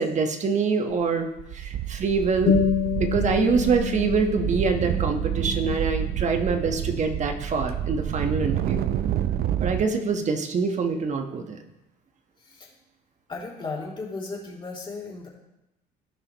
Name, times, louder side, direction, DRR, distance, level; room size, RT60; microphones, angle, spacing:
voice 1, 0.0-2.6 3.0-8.8 9.6-11.6, right 4 dB, 45° right, 5 dB, 1.3 m, -25 dB
sound 1, 0.9-1.1 1.4-9.9, right 11 dB, 65° right, 0.6 m, -28 dB
sound 2, 2.5-7.5, left 7 dB, 70° left, 2.4 m, -29 dB
voice 2, 12.4-12.7 13.3-15.3, left 3 dB, 30° left, -3 dB, 3.3 m, -35 dB
17.0 x 5.8 x 3.1 m, 0.89 s
cardioid pair, 110°, 17 cm